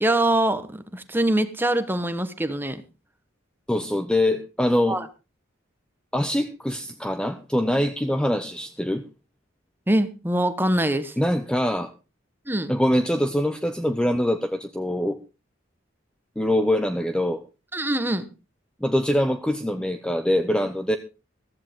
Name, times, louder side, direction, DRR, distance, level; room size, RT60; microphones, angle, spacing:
voice 1, 0.0-2.8 4.9-5.1 9.9-11.1 12.5-12.7 17.7-18.2, right 1 dB, 10° right, 10 dB, 1.2 m, -23 dB
voice 2, 3.7-5.0 6.1-9.0 11.2-11.9 12.7-15.2 16.4-17.4 18.8-21.0, left 1 dB, 5° left, 9 dB, 0.7 m, -23 dB
15.0 x 14.0 x 3.7 m, 0.30 s
head